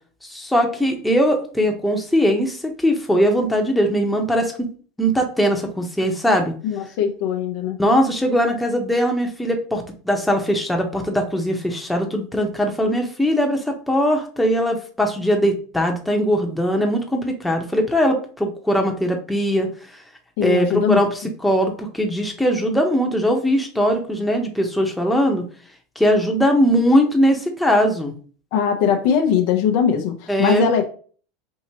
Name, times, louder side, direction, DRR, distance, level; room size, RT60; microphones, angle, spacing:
voice 1, 0.3-4.7 5.0-6.5 7.8-19.7 20.4-25.4 26.0-28.1 30.3-30.7, equal, 5° left, 2 dB, 0.9 m, -20 dB
voice 2, 6.6-7.8 20.4-21.0 28.5-30.9, left 8 dB, 70° left, 5 dB, 0.7 m, -20 dB
4.6 x 2.8 x 2.8 m, 0.42 s
supercardioid pair, 105°, 0 cm